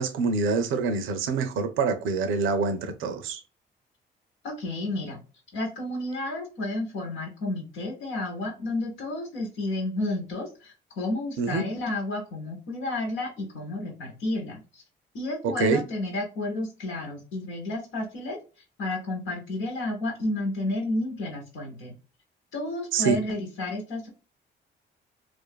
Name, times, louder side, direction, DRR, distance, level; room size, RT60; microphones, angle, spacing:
voice 1, 0.0-3.4 11.4-11.6 15.4-15.8 22.9-23.2, right 4 dB, 85° right, 0.5 m, -25 dB
voice 2, 4.4-5.2 5.5-14.8 15.1-18.4 18.8-21.9 22.5-24.1, left 2 dB, 85° left, 1.1 m, -31 dB
2.5 x 2.4 x 2.2 m
cardioid pair, 90°, 20 cm